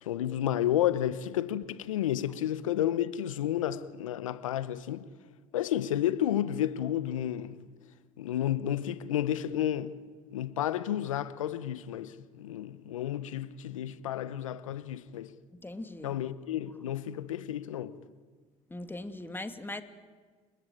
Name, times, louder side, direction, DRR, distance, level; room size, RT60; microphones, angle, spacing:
voice 1, 0.0-5.1 5.5-7.6 8.2-10.0 10.3-15.3 16.0-17.9, left 11 dB, 90° left, 1.0 m, -31 dB
voice 2, 15.5-16.2 18.7-19.8, left 2 dB, 15° left, 2.6 m, -40 dB
29.5 x 20.0 x 9.3 m
hypercardioid pair, 70°, 16 cm